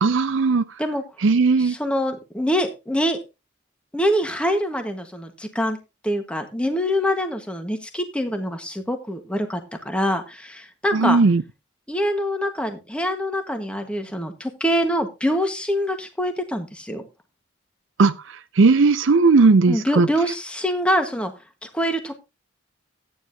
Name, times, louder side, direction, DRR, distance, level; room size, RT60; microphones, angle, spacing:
voice 1, 0.0-0.6 1.2-1.7 10.9-11.4 18.0-18.1 18.6-20.1, right 4 dB, 65° right, 0.5 m, -16 dB
voice 2, 1.6-3.2 3.9-5.8 6.0-11.2 11.9-17.0 19.7-21.3 21.6-22.2, equal, 5° left, 1.4 m, -25 dB
14.0 x 9.5 x 2.8 m
head